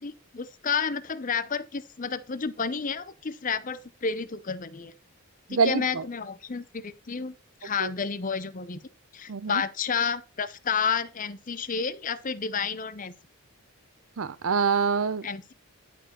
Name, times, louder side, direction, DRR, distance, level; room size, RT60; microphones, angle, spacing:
voice 1, 0.0-4.9 5.5-7.4 7.6-8.8 9.1-13.1 15.2-15.5, left 6 dB, 35° left, 0.6 m, -30 dB
voice 2, 5.5-6.0 7.8-7.9 9.3-9.6 14.2-15.3, right 5 dB, 65° right, 0.6 m, -25 dB
11.0 x 4.5 x 4.3 m
head